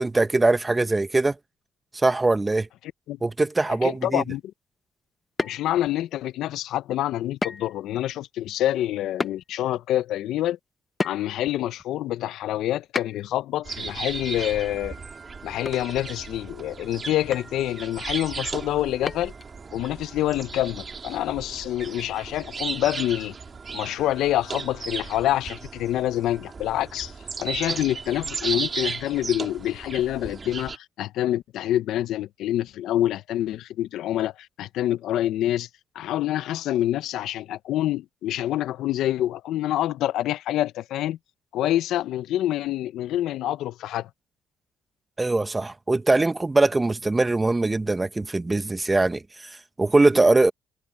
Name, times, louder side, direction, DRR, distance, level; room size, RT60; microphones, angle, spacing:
voice 1, 0.0-1.3 1.9-2.7 3.2-4.2 45.2-50.5, right 2 dB, 20° right, 1.2 m, -22 dB
voice 2, 3.8-4.4 5.4-10.6 11.0-15.0 15.4-19.3 19.7-23.3 23.7-27.1 27.4-35.7 35.9-41.2 41.5-44.1, left 13 dB, 75° left, 0.7 m, -26 dB
sound 1, 5.4-6.0 7.4-7.8 8.1-8.2 9.2-9.4 11.0-11.5 13.0-13.4 15.1-15.3 15.7-15.8 16.1-16.2 17.3-17.6 19.1-19.5, left 3 dB, 25° left, 0.5 m, -31 dB
sound 2, 13.6-30.8, right 5 dB, 35° right, 2.3 m, -35 dB
cardioid pair, 80°, 0 cm